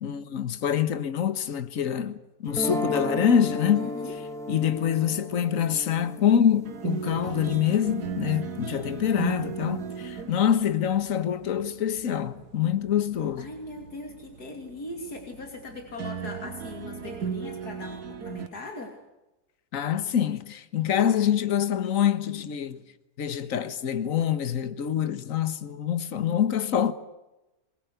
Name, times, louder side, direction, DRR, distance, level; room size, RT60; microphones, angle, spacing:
voice 1, 0.0-3.9 4.5-13.5 19.7-22.8 23.2-26.9, left 9 dB, 60° left, 1.6 m, -25 dB
sound 1, 2.5-8.6, left 1 dB, ahead, 2.3 m, -34 dB
voice 2, 3.8-4.2 13.4-18.9, left 2 dB, 85° left, 3.4 m, -40 dB
sound 2, 6.6-18.5, right 6 dB, 90° right, 1.8 m, -37 dB
24.0 x 21.5 x 8.2 m
omnidirectional pair, 1.6 m